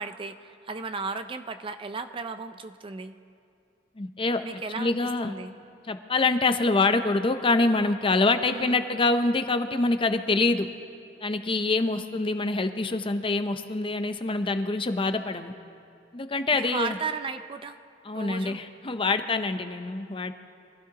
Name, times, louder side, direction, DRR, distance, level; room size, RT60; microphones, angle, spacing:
voice 1, 0.0-3.2 4.4-5.5 8.5-8.8 16.5-17.8 18.1-18.6, right 4 dB, 25° right, 10 dB, 0.4 m, -35 dB
voice 2, 4.0-5.3 5.9-10.7 11.2-15.5 16.1-17.0 18.0-20.3, left 3 dB, 30° left, 9 dB, 0.6 m, -25 dB
24.5 x 16.0 x 2.9 m, 2.5 s
head